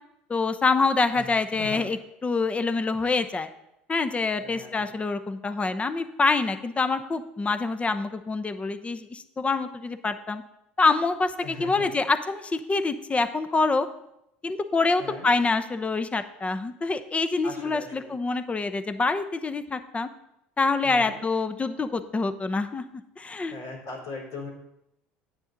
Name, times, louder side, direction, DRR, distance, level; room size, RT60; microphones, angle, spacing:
voice 1, 0.3-3.5 3.9-10.4 10.8-13.9 14.4-20.1 20.6-22.8 23.2-23.5, left 3 dB, 20° left, 10 dB, 0.8 m, -26 dB
voice 2, 1.1-1.9 4.4-5.0 11.4-11.9 15.0-15.3 17.4-18.1 20.8-21.2 23.5-24.5, left 3 dB, 65° left, -2 dB, 4.1 m, -39 dB
9.8 x 8.4 x 4.0 m, 0.82 s
hypercardioid pair, 80°, 6 cm